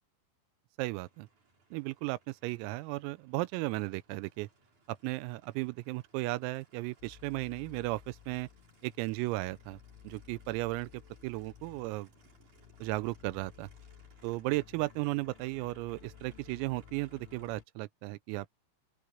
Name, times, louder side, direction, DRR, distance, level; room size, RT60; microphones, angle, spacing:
voice 1, 0.8-1.3 1.7-4.5 4.9-8.5 8.8-9.8 10.0-12.1 12.8-13.7 14.2-18.6, right 21 dB, 85° right, 3.4 m, -35 dB
Aircraft, 0.9-17.6, right 3 dB, 35° right, 6.8 m, -66 dB
sound 1, 7.0-17.6, left 10 dB, 75° left, 3.4 m, -56 dB
open air
omnidirectional pair, 6.0 m